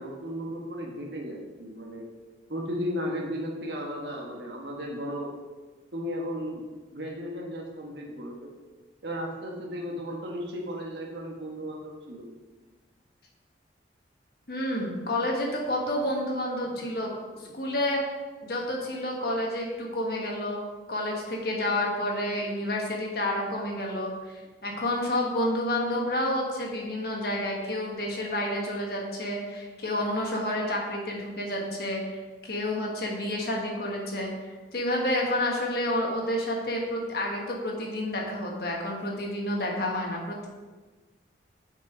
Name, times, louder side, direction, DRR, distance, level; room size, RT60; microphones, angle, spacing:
voice 1, 0.0-2.1 2.5-5.4 5.9-6.6 6.9-8.5 9.0-12.3, equal, 70° right, 0 dB, 1.3 m, -35 dB
voice 2, 14.5-17.1 17.5-18.0 18.4-40.5, left 1 dB, 55° left, -1 dB, 1.4 m, -30 dB
6.6 x 4.8 x 4.9 m, 1.3 s
head